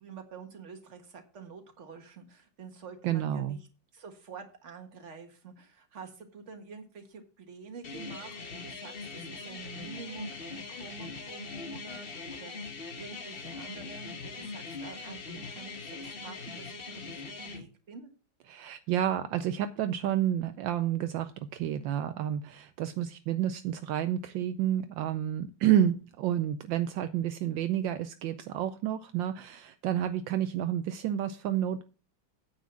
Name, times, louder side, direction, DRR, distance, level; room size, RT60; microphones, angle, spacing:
voice 1, 0.0-3.6 3.9-18.1, right 5 dB, 40° right, 5 dB, 1.8 m, -47 dB
voice 2, 3.0-3.6 18.5-31.8, right 11 dB, 75° right, 10 dB, 1.3 m, -30 dB
sound 1, 7.8-17.6, left 4 dB, 35° left, 1.1 m, -41 dB
9.3 x 4.9 x 7.4 m, 0.34 s
omnidirectional pair, 2.1 m